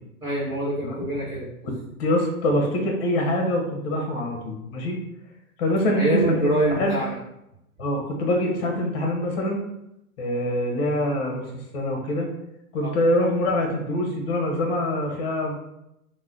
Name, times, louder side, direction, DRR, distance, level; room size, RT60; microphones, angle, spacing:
voice 1, 0.2-1.5 5.9-7.2 12.8-12.9, right 1 dB, 10° right, -9 dB, 1.3 m, -25 dB
voice 2, 1.6-5.0 5.6-7.0 7.8-9.6 10.2-11.5 11.7-12.3 12.7-15.5, left 1 dB, 45° left, 1 dB, 1.0 m, -24 dB
3.0 x 2.2 x 3.7 m, 0.85 s
hypercardioid pair, 130°, 43 cm